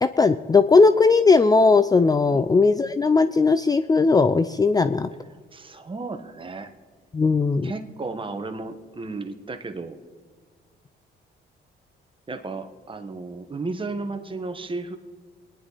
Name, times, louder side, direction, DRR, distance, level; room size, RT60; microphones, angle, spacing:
voice 1, 0.0-5.1 7.1-7.7, left 4 dB, 20° left, 12 dB, 0.4 m, -18 dB
voice 2, 5.3-6.7 7.6-10.0 12.3-15.0, right 3 dB, 25° right, 7 dB, 1.3 m, -34 dB
21.5 x 10.0 x 4.1 m, 1.6 s
cardioid pair, 90°, 20 cm